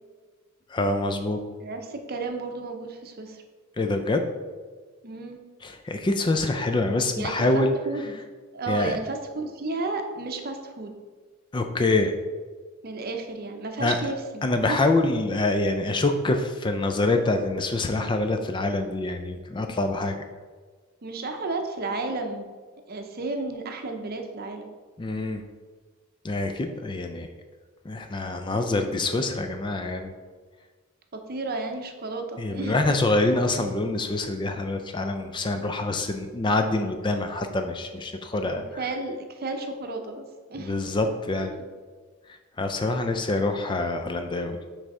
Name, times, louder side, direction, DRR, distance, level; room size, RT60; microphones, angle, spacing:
voice 1, 0.7-1.4 3.8-4.2 5.6-7.7 8.7-9.0 11.5-12.1 13.8-14.0 14.4-20.2 25.0-25.4 26.2-27.3 27.8-30.1 32.4-38.6 40.6-41.5 42.6-44.6, left 2 dB, 20° left, 6 dB, 0.3 m, -25 dB
voice 2, 1.6-3.4 5.0-5.4 7.1-8.2 8.5-10.9 12.8-14.9 21.0-22.5 22.9-24.6 28.5-28.9 31.1-32.7 38.4-40.7 41.4-41.6, right 3 dB, 45° right, 5 dB, 0.7 m, -33 dB
6.2 x 3.3 x 5.3 m, 1.4 s
head